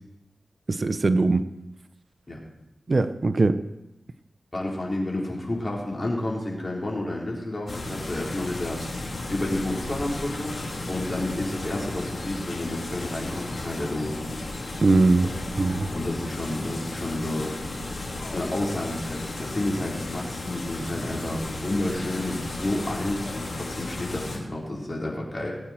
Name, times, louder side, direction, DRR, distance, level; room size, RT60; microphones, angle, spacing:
voice 1, 0.7-1.4 2.9-3.6 14.8-15.3 15.6-15.9, right 3 dB, 55° right, 11 dB, 0.7 m, -21 dB
voice 2, 4.5-10.6 10.9-14.1 15.2-15.3 15.9-17.6 18.3-25.6, left 1 dB, 40° left, -3 dB, 4.3 m, -30 dB
sound 1, 7.7-24.4, left 2 dB, 60° left, 3.5 m, -34 dB
20.0 x 8.7 x 4.5 m, 0.94 s
cardioid pair, 50°, 0 cm